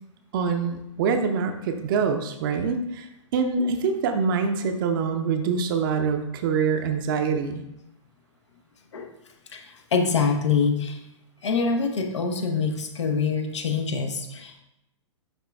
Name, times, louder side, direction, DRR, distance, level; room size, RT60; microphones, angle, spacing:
voice 1, 0.3-3.1 3.3-7.6, right 5 dB, 45° right, 5 dB, 0.8 m, -25 dB
voice 2, 9.5-11.0 11.4-14.6, left 5 dB, 65° left, 4 dB, 0.9 m, -25 dB
11.5 x 3.9 x 2.3 m, 0.86 s
figure-of-eight pair, 110°, 16 cm